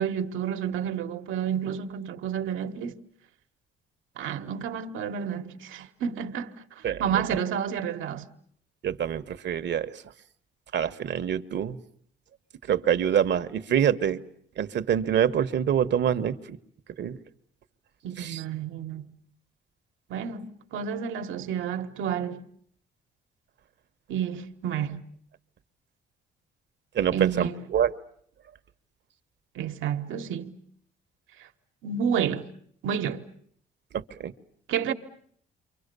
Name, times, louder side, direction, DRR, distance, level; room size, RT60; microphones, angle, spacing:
voice 1, 0.0-3.0 4.2-8.2 18.0-19.1 20.1-22.4 24.1-25.0 27.1-27.5 29.5-30.6 31.4-31.5 31.8-32.5 32.8-33.2 34.7-34.9, right 8 dB, 85° right, 1.4 m, -30 dB
voice 2, 8.8-9.9 10.7-11.8 12.7-14.2 14.6-16.6 17.0-17.2 18.2-18.4 26.9-27.9 33.9-34.3, right 9 dB, 60° right, 1.2 m, -25 dB
29.0 x 25.0 x 6.8 m
cardioid pair, 90°, 20 cm